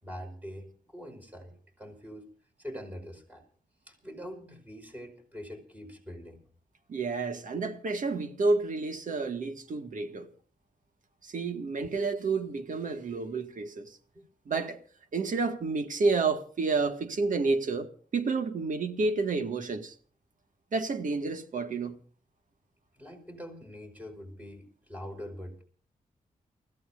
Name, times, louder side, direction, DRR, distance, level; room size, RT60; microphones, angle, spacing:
voice 1, 0.0-2.3 2.6-3.4 3.9-6.4 11.4-11.6 11.8-12.0 14.1-14.3 23.0-25.6, equal, 10° right, 5.2 m, -44 dB
voice 2, 6.9-10.3 11.2-14.0 14.5-14.8 15.1-19.9 20.7-22.0, right 3 dB, 65° right, 1.9 m, -30 dB
29.5 x 15.5 x 2.6 m
wide cardioid pair, 125°, 15 cm